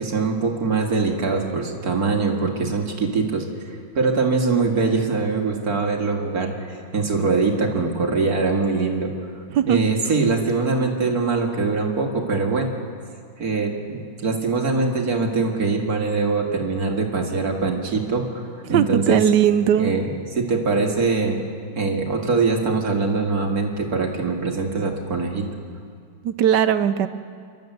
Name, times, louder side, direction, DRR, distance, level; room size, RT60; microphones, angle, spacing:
voice 1, 0.0-3.5 3.9-9.1 9.7-12.7 13.4-18.2 18.7-19.2 19.8-20.1 20.4-21.4 21.8-25.4, right 4 dB, 50° right, 2 dB, 2.4 m, -22 dB
voice 2, 9.5-9.9 18.7-19.9 26.2-27.1, right 9 dB, 70° right, 12 dB, 1.2 m, -19 dB
28.0 x 12.5 x 7.9 m, 2.2 s
omnidirectional pair, 2.1 m